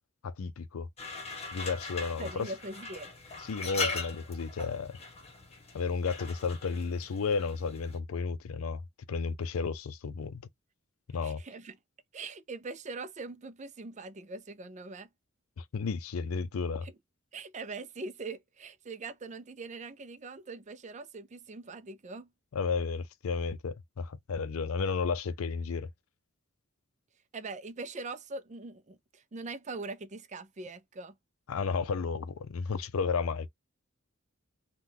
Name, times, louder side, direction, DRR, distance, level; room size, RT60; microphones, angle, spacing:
voice 1, 0.2-0.9 1.5-2.5 3.4-5.0 5.7-8.8 9.1-10.5 11.1-11.4 15.6-16.9 22.5-25.9 31.5-33.5, left 5 dB, 90° left, 0.5 m, -33 dB
sound 1, 1.0-8.0, left 3 dB, 30° left, 1.0 m, -40 dB
voice 2, 2.2-3.1 11.2-11.8 12.1-15.1 16.8-17.0 17.3-22.3 27.3-31.2, right 3 dB, 35° right, 0.5 m, -42 dB
3.6 x 2.3 x 2.8 m
head